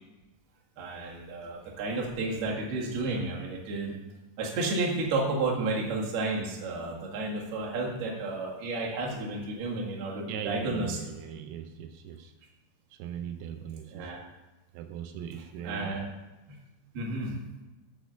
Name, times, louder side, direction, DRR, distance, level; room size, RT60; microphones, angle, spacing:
voice 1, 0.8-4.0 4.4-11.0 13.9-14.2 15.6-16.1 16.5-16.6 16.9-17.4, right 2 dB, 60° right, -2 dB, 3.2 m, -32 dB
voice 2, 10.3-12.3 12.9-14.1 14.7-16.0, right 9 dB, 85° right, 6 dB, 3.4 m, -39 dB
12.0 x 4.2 x 6.7 m, 1.1 s
omnidirectional pair, 6.0 m